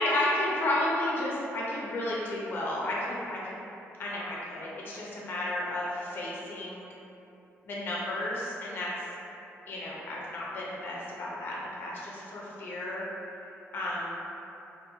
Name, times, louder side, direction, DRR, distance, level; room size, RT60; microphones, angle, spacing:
voice 1, 0.0-3.5 4.0-6.9 7.6-8.9 9.7-13.0 13.7-14.2, left 1 dB, 45° left, -5 dB, 0.5 m, -32 dB
2.5 x 2.3 x 2.7 m, 2.8 s
wide cardioid pair, 170°, 5 cm